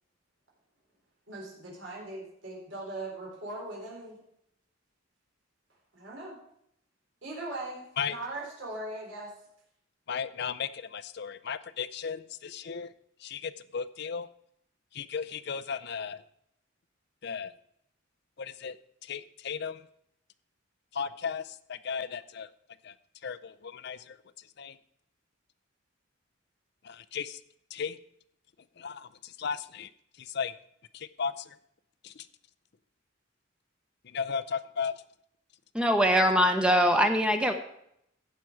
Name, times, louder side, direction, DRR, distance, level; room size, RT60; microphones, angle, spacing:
voice 1, 1.3-4.2 5.9-6.4 7.2-9.3, right 2 dB, 70° right, -3 dB, 4.0 m, -40 dB
voice 2, 10.1-12.9 13.2-14.3 14.9-16.2 17.2-17.5 18.4-18.8 19.0-19.9 20.9-22.5 22.8-22.9 23.2-24.8 26.8-27.4 27.7-28.0 28.8-29.9 30.2-30.5 30.9-31.6 32.0-32.3 34.0-35.0, left 6 dB, 55° left, 14 dB, 0.5 m, -35 dB
voice 3, 35.7-37.5, equal, 5° right, 5 dB, 0.9 m, -22 dB
15.5 x 5.9 x 4.8 m, 0.73 s
head